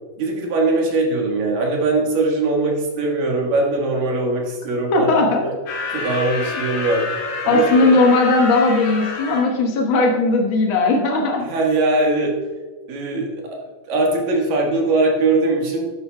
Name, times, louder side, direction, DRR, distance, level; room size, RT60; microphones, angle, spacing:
voice 1, 0.2-5.6 5.9-7.1 7.4-7.9 11.4-12.4 12.9-13.6 13.9-15.9, right 2 dB, 75° right, 0 dB, 3.2 m, -21 dB
voice 2, 4.9-5.4 7.5-11.5, left 3 dB, 90° left, 0 dB, 1.1 m, -17 dB
sound 1, 5.7-9.4, left 4 dB, 65° left, 3.6 m, -28 dB
11.5 x 9.6 x 2.3 m, 1.4 s
omnidirectional pair, 4.1 m